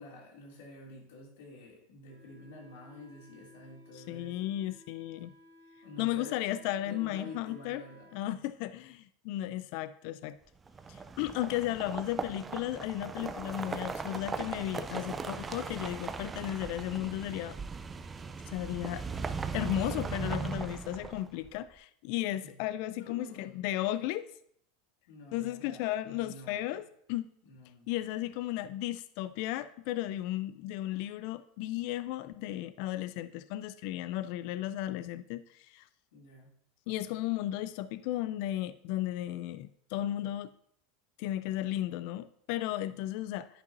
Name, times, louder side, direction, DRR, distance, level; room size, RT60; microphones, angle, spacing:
voice 1, 0.0-4.5 5.8-6.4 6.8-8.1 22.4-22.5 23.0-23.5 25.1-26.8 27.4-28.2 36.1-36.5, left 2 dB, 80° left, -2 dB, 2.7 m, -49 dB
Wind instrument woodwind instrument, 2.1-8.2, left 1 dB, 90° right, 1.3 m, -58 dB
voice 2, 3.9-5.3 6.0-7.8 8.1-10.4 10.9-17.6 18.5-19.0 19.5-24.3 25.3-27.3 27.9-35.9 36.9-40.5 41.2-43.5, left 14 dB, 65° left, 14 dB, 0.3 m, -35 dB
sound 1, 10.7-21.5, right 4 dB, 20° right, 0.4 m, -38 dB
10.5 x 5.2 x 2.6 m, 0.67 s
supercardioid pair, 115°, 0 cm